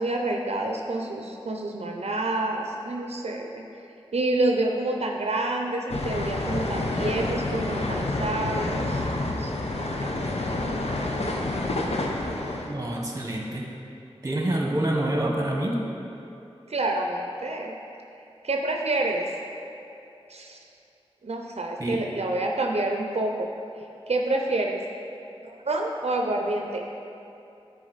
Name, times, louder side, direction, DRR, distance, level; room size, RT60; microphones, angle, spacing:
voice 1, 0.0-3.7 4.1-10.7 16.7-17.8 18.4-19.3 20.3-20.6 21.2-23.5 24.1-24.8 25.4-26.9, right 2 dB, 85° right, 1 dB, 0.5 m, -28 dB
sound 1, 5.9-12.7, left 2 dB, 85° left, 0.6 m, -28 dB
voice 2, 12.6-13.6 14.2-15.8 21.8-22.0, right 1 dB, 30° right, -1 dB, 1.1 m, -27 dB
9.4 x 4.7 x 4.0 m, 2.8 s
wide cardioid pair, 60°, 10 cm